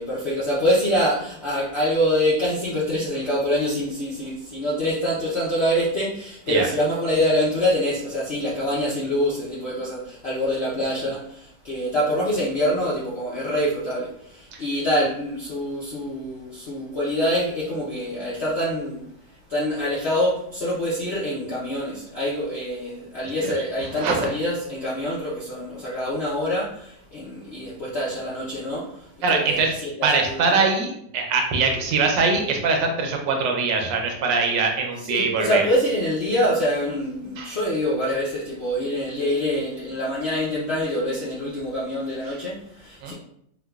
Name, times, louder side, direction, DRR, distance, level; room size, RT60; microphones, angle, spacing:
voice 1, 0.0-19.0 19.5-30.6 35.1-43.1, equal, 65° left, -7 dB, 0.6 m, -25 dB
voice 2, 29.2-29.7 30.0-35.6 37.4-37.6 42.3-42.4 43.0-43.1, right 4 dB, 80° right, 2 dB, 1.3 m, -22 dB
4.6 x 2.2 x 2.3 m, 0.71 s
omnidirectional pair, 2.0 m